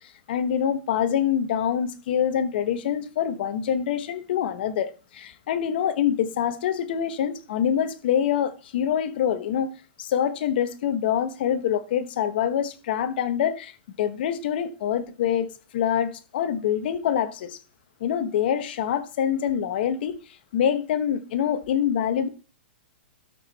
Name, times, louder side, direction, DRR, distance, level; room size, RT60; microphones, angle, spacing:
voice 1, 0.3-9.7 10.0-13.7 14.0-17.6 18.0-20.2 20.5-22.3, left 9 dB, 60° left, 1.2 m, -25 dB
12.5 x 4.7 x 4.2 m
hypercardioid pair, 145°, 6 cm